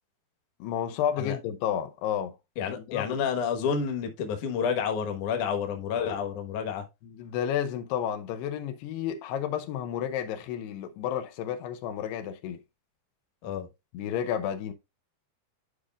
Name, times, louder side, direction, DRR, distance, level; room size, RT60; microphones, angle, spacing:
voice 1, 0.6-2.4 2.9-3.2 7.0-12.6 13.9-14.7, left 9 dB, 85° left, 2.8 m, -31 dB
voice 2, 2.6-6.8 13.4-13.7, left 7 dB, 60° left, 2.3 m, -29 dB
11.5 x 4.9 x 2.4 m
omnidirectional pair, 4.7 m